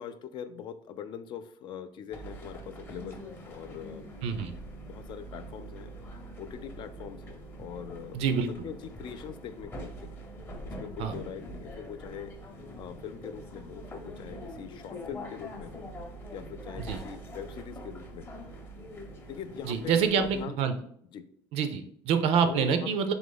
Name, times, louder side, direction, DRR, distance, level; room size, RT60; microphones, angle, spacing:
voice 1, 0.0-4.1 4.8-5.9 6.4-10.2 10.6-12.3 12.8-15.9 16.3-18.3 19.3-20.6 21.1-21.3 22.5-22.9, left 8 dB, 45° left, 11 dB, 0.3 m, -42 dB
sound 1, 2.1-20.5, right 1 dB, 20° left, 0.7 m, -44 dB
voice 2, 4.2-4.5 8.1-8.5 11.0-11.1 16.9-17.0 19.6-20.7 21.5-23.1, right 6 dB, 65° right, 9 dB, 0.5 m, -26 dB
3.9 x 2.9 x 3.8 m, 0.64 s
cardioid pair, 145°, 11 cm